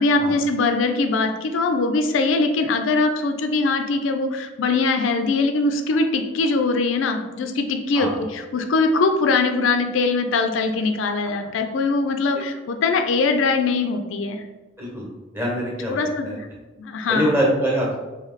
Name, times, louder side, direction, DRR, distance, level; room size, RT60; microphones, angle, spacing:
voice 1, 0.0-14.4 15.9-16.3 16.8-17.3, left 3 dB, 75° left, 6 dB, 0.4 m, -22 dB
voice 2, 14.8-15.1 15.3-16.4 17.1-18.0, equal, 10° right, -4 dB, 1.0 m, -24 dB
3.1 x 2.7 x 4.0 m, 1.2 s
head